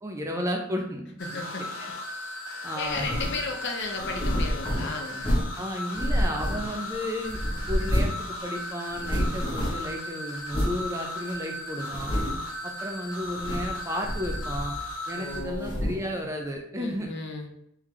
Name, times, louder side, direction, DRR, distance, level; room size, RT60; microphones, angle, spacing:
voice 1, 0.0-1.4 1.8-1.9 2.6-3.1 5.6-7.4 7.7-12.1 12.6-14.7 15.1-17.1, equal, 15° right, 2 dB, 0.5 m, -33 dB
sound 1, 1.2-15.4, left 1 dB, 80° left, 1.1 m, -37 dB
voice 2, 1.2-1.6 2.7-5.3 15.2-15.9 16.7-17.5, left 3 dB, 55° left, 3 dB, 0.7 m, -34 dB
sound 2, 2.9-3.4 4.0-5.6 6.0-6.9 7.2-8.3 8.5-8.6 8.9-9.9 10.5-10.8 11.3-11.4 11.8-12.5 13.2-13.8 14.0-14.9 15.3-16.1, equal, 25° left, 0.9 m, -29 dB
3.6 x 3.4 x 3.2 m, 0.75 s
head